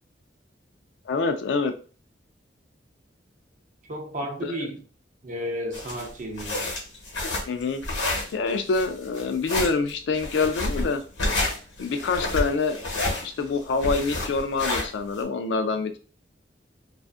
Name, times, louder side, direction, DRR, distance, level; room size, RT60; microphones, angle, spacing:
voice 1, 1.1-1.7 4.4-4.5 7.5-7.8 8.3-11.0 11.8-12.8 13.2-16.0, left 4 dB, 75° left, 0.4 m, -26 dB
voice 2, 3.9-4.8 5.2-6.6, equal, 45° right, 0.5 m, -32 dB
sound 1, 5.7-15.2, left 2 dB, 90° left, 1.0 m, -29 dB
2.4 x 2.4 x 2.3 m
head